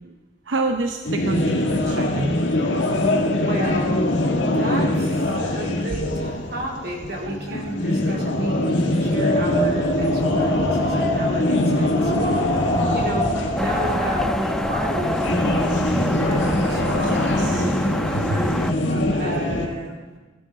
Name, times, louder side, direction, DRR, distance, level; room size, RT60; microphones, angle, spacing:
voice 1, 0.5-2.3 7.3-7.7 16.3-17.7 18.1-18.4 18.9-19.4, right 2 dB, 85° right, 5 dB, 0.8 m, -29 dB
sound 1, 1.0-19.7, left 1 dB, 85° left, 1.6 m, -23 dB
voice 2, 3.4-12.6 12.9-18.6 19.2-20.0, right 1 dB, 55° right, -1 dB, 3.0 m, -32 dB
Wind, 8.8-17.2, left 1 dB, 20° left, 1.9 m, -27 dB
sound 2, 13.6-18.7, equal, 5° left, 0.4 m, -26 dB
16.5 x 12.0 x 4.0 m, 1.3 s
head